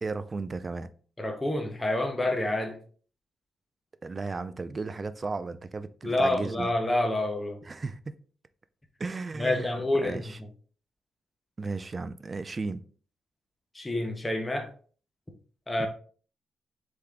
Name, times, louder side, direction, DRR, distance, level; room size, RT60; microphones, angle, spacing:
voice 1, 0.0-0.9 4.0-6.7 7.6-8.2 9.0-10.4 11.6-12.8 15.8-15.9, right 3 dB, 30° right, 0.3 m, -35 dB
voice 2, 1.2-2.8 6.0-7.6 9.4-10.2 13.7-14.7 15.7-15.9, left 1 dB, 15° left, 0.7 m, -28 dB
3.8 x 3.6 x 3.4 m
cardioid pair, 110°, 0 cm